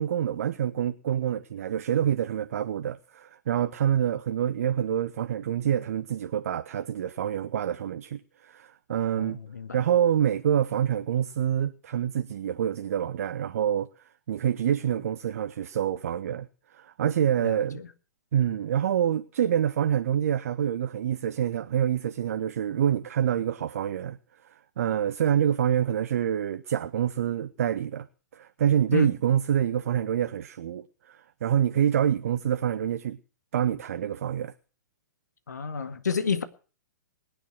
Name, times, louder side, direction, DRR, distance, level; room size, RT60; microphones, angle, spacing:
voice 1, 0.0-9.4 9.7-13.9 14.3-16.5 16.7-17.8 18.3-24.2 24.5-28.1 28.3-33.2 33.5-34.5, right 9 dB, 55° right, 0.9 m, -26 dB
voice 2, 9.1-9.7 17.4-17.9 28.9-29.1 35.5-36.4, left 6 dB, 70° left, 2.0 m, -30 dB
20.0 x 10.0 x 6.2 m
figure-of-eight pair, 110°, 10 cm